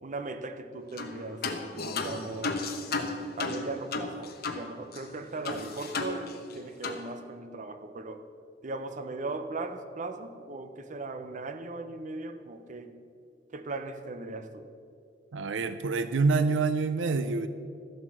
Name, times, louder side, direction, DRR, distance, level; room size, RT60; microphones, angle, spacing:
voice 1, 0.0-1.5 1.9-2.7 3.0-8.2 8.6-13.0 13.5-14.7, right 3 dB, 45° right, 8 dB, 0.7 m, -38 dB
sound 1, 1.0-1.1 1.4-4.6 4.9-5.0 5.4-6.5 6.8-7.0, left 3 dB, 55° left, 1.0 m, -33 dB
voice 2, 15.3-17.5, right 4 dB, 85° right, 11 dB, 0.5 m, -26 dB
13.5 x 7.8 x 6.1 m, 2.4 s
head